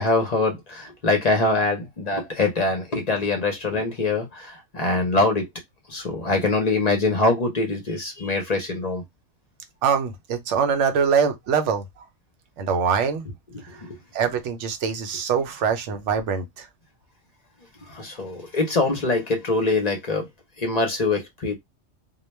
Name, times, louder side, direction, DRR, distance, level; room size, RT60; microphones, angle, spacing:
voice 1, 0.0-5.5 5.9-9.0 13.8-14.0 17.9-20.3 20.6-21.5, left 3 dB, 45° left, 0.6 m, -23 dB
voice 2, 9.8-12.0 12.6-13.3 13.6-16.7, right 6 dB, 75° right, 0.9 m, -24 dB
2.3 x 2.2 x 3.0 m
omnidirectional pair, 1.3 m